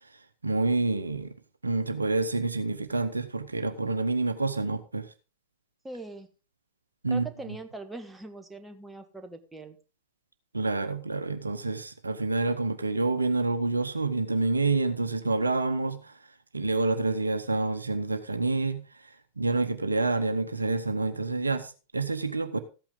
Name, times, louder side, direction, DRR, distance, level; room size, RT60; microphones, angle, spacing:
voice 1, 0.0-1.3 1.6-5.1 7.0-7.3 10.5-16.2 16.5-22.6, right 3 dB, 80° right, 1.0 m, -28 dB
voice 2, 5.8-6.3 7.1-9.8, right 2 dB, 5° right, 1.5 m, -41 dB
14.5 x 8.8 x 3.8 m
figure-of-eight pair, 90°, 0 cm